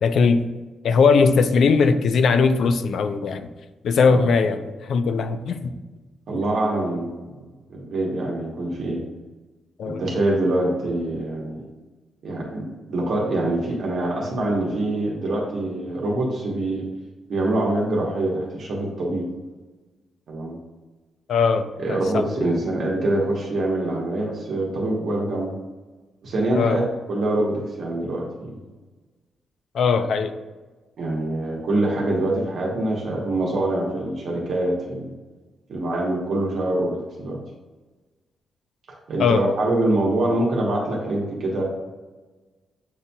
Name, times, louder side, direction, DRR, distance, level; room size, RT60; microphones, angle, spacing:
voice 1, 0.0-0.4 0.8-3.5 3.8-5.7 9.8-10.0 21.3-22.5 26.5-26.8 29.7-30.3 39.2-39.4, left 5 dB, 60° left, 9 dB, 0.3 m, -20 dB
voice 2, 6.3-7.3 7.7-9.0 9.8-11.6 12.2-16.8 17.3-19.3 20.3-20.6 21.8-25.5 26.2-26.8 27.1-28.5 31.0-35.1 35.7-37.4 39.1-41.6, right 1 dB, 55° right, -3 dB, 0.9 m, -24 dB
7.2 x 2.7 x 2.2 m, 1.2 s
wide cardioid pair, 150°, 0 cm